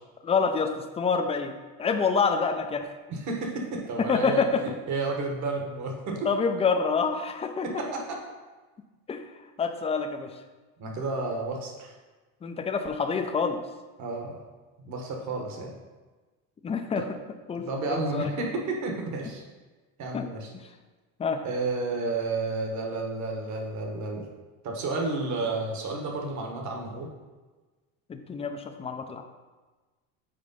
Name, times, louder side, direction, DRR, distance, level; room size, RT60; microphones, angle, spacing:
voice 1, 0.2-0.7 1.0-1.5 1.8-2.9 4.1-4.6 6.2-7.7 9.1-9.2 9.6-10.3 12.4-13.6 16.6-17.0 17.5-18.3 20.1-20.2 21.2-21.4 28.1-29.2, left 5 dB, 15° left, 6 dB, 0.4 m, -27 dB
voice 2, 3.1-4.5 4.9-6.3 7.6-8.2 10.8-11.9 14.0-14.4 14.8-15.8 17.0-17.1 17.5-19.4 20.0-20.5 21.4-24.3 24.6-27.1, right 3 dB, 50° right, 1 dB, 1.4 m, -31 dB
5.1 x 4.6 x 5.4 m, 1.3 s
cardioid pair, 130°, 38 cm